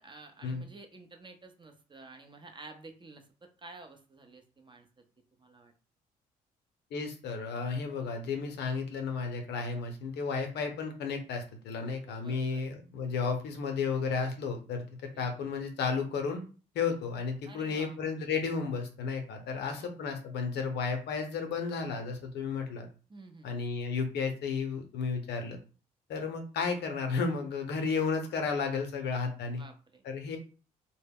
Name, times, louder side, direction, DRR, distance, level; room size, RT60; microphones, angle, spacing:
voice 1, 0.0-4.9 5.4-5.7 11.8-12.6 15.1-15.3 17.5-18.0 19.5-19.9 23.1-23.5 29.5-30.0, right 3 dB, 25° right, 5 dB, 0.6 m, -51 dB
voice 2, 6.9-14.9 15.2-16.4 16.7-22.9 23.4-25.6 26.1-29.6 30.0-30.4, left 5 dB, 70° left, 5 dB, 0.6 m, -33 dB
2.1 x 2.0 x 3.5 m, 0.36 s
hypercardioid pair, 50°, 18 cm